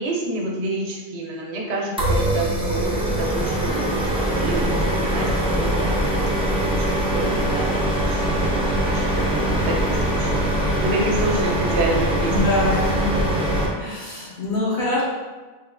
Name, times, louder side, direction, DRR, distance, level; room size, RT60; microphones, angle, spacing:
voice 1, 0.0-6.3 6.6-12.5, right 2 dB, 85° right, -1 dB, 0.9 m, -28 dB
sound 1, 2.0-13.7, right 1 dB, 10° right, 0.4 m, -22 dB
voice 2, 8.0-8.4 12.3-13.2 13.8-15.0, left 2 dB, 60° left, -8 dB, 0.8 m, -25 dB
3.2 x 3.0 x 2.4 m, 1.3 s
omnidirectional pair, 1.1 m